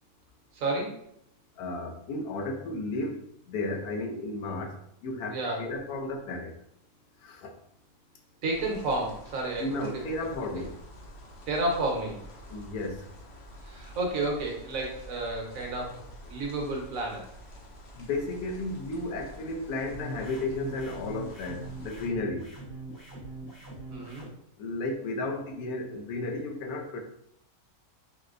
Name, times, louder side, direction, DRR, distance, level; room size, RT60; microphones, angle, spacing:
voice 1, 0.5-1.0 5.3-5.6 8.4-10.3 11.5-12.3 13.6-17.3 23.9-24.2, right 2 dB, 65° right, -1 dB, 1.2 m, -31 dB
voice 2, 1.6-6.5 7.2-7.5 9.6-10.8 12.5-13.1 18.0-22.5 24.6-27.0, left 2 dB, 80° left, 2 dB, 1.1 m, -33 dB
sound 1, 8.5-22.1, equal, 60° left, 0.7 m, -48 dB
sound 2, 19.9-24.3, right 3 dB, 30° left, 0.3 m, -42 dB
4.2 x 2.1 x 2.4 m, 0.70 s
omnidirectional pair, 1.6 m